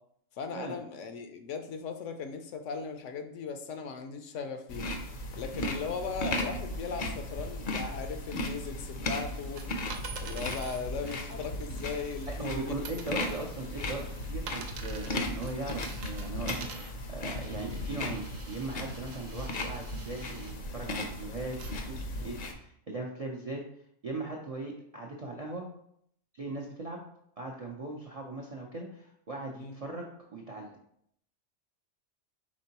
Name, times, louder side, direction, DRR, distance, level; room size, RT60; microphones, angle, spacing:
voice 1, 0.4-4.9 5.3-9.7 10.1-13.0 13.4-13.5 22.2-22.4 29.5-29.8, left 5 dB, 75° left, 7 dB, 0.9 m, -38 dB
sound 1, 4.7-22.5, left 1 dB, 50° left, 0.6 m, -36 dB
sound 2, 9.3-12.6 12.8-20.5 21.1-21.7 22.3-22.4, right 6 dB, 80° right, 1.0 m, -47 dB
voice 2, 12.4-23.6 24.0-25.7 26.3-27.0 27.4-30.7, right 2 dB, 50° right, -1 dB, 0.4 m, -39 dB
5.2 x 3.6 x 2.8 m, 0.70 s
omnidirectional pair, 1.3 m